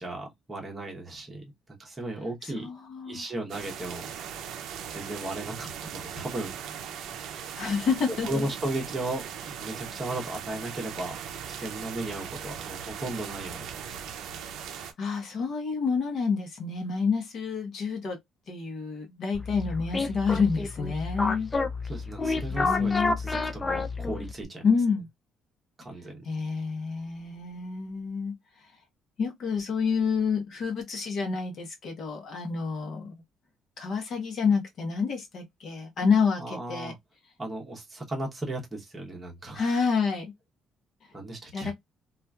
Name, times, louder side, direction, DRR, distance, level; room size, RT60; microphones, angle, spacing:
voice 1, 0.0-1.5 1.8-2.7 3.1-4.0 4.9-6.6 8.2-11.2 11.5-14.1 21.8-24.6 25.8-26.3 36.4-37.0 37.4-39.6 41.1-41.7, right 1 dB, 15° right, 0.9 m, -36 dB
voice 2, 2.5-3.2 7.5-8.3 14.7-18.2 18.5-21.5 22.5-23.2 24.6-25.1 26.2-28.3 29.2-33.2 33.8-36.9 39.5-40.3 41.5-41.7, left 5 dB, 50° left, 1.0 m, -28 dB
sound 1, 3.5-14.9, right 8 dB, 70° right, 0.5 m, -39 dB
sound 2, 19.3-24.4, left 3 dB, 15° left, 0.4 m, -30 dB
2.9 x 2.4 x 2.3 m
cardioid pair, 160°, 0 cm